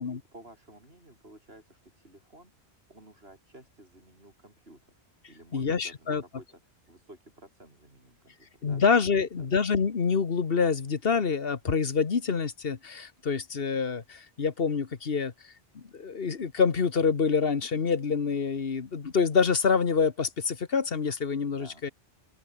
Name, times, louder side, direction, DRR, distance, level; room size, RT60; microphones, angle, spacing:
voice 1, 0.3-2.5 2.9-4.8 5.3-8.8 9.1-9.3 21.5-21.9, right 1 dB, 60° right, 7.8 m, -53 dB
voice 2, 5.5-6.2 8.6-15.3 15.7-21.9, left 5 dB, 55° left, 1.6 m, -26 dB
open air
omnidirectional pair, 1.2 m